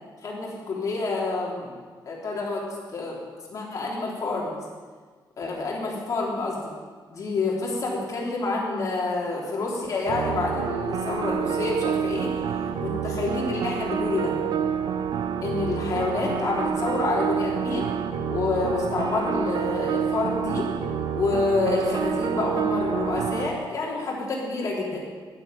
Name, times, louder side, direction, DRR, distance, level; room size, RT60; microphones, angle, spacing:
voice 1, 0.2-1.7 2.0-2.7 2.9-3.2 3.5-4.5 5.4-6.6 7.1-12.4 12.8-14.4 15.4-17.9 18.3-20.7 21.1-25.0, left 3 dB, 40° left, -3 dB, 3.4 m, -28 dB
sound 1, 10.1-23.5, right 7 dB, 65° right, 0.9 m, -28 dB
9.9 x 9.1 x 9.7 m, 1.5 s
wide cardioid pair, 170°, 8 cm